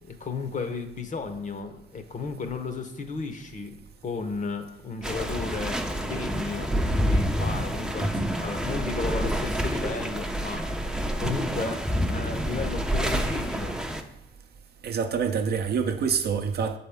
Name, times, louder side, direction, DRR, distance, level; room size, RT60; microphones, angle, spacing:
voice 1, 0.0-3.8 4.0-6.7 7.0-10.9 11.2-11.8 12.1-13.8, left 4 dB, 40° left, 0.8 m, -34 dB
sound 1, 5.0-14.0, equal, 5° right, 0.5 m, -28 dB
voice 2, 14.8-16.8, right 6 dB, 55° right, 0.6 m, -27 dB
7.1 x 4.2 x 3.5 m
cardioid pair, 90°, 20 cm